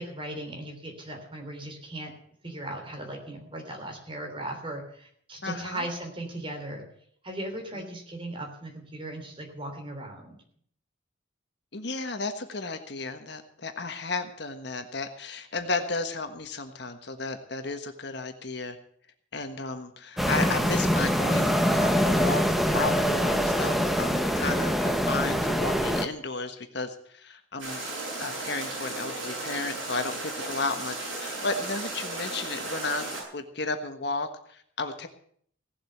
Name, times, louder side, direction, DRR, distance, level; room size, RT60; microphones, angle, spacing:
voice 1, 0.0-2.1 2.4-6.8 7.2-10.4, right 1 dB, 25° right, 2 dB, 3.4 m, -37 dB
voice 2, 5.4-5.8 7.7-7.9 11.7-18.8 19.3-22.4 22.7-27.8 28.2-35.1, left 3 dB, 55° left, 7 dB, 1.3 m, -33 dB
sound 1, 20.2-26.1, equal, ahead, 0.9 m, -24 dB
sound 2, 27.6-33.2, right 2 dB, 65° right, 7.4 m, -35 dB
17.0 x 7.8 x 7.9 m, 0.62 s
head